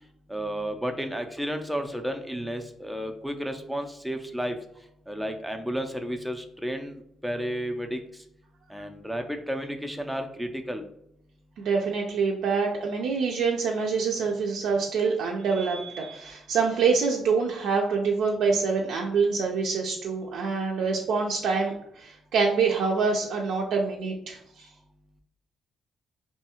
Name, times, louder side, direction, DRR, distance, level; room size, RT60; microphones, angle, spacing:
voice 1, 0.3-4.6 5.1-8.2 8.7-10.8, equal, ahead, 4 dB, 0.3 m, -32 dB
voice 2, 11.6-24.7, right 5 dB, 80° right, -1 dB, 0.3 m, -26 dB
2.7 x 2.3 x 2.8 m, 0.76 s
cardioid pair, 90°, 0 cm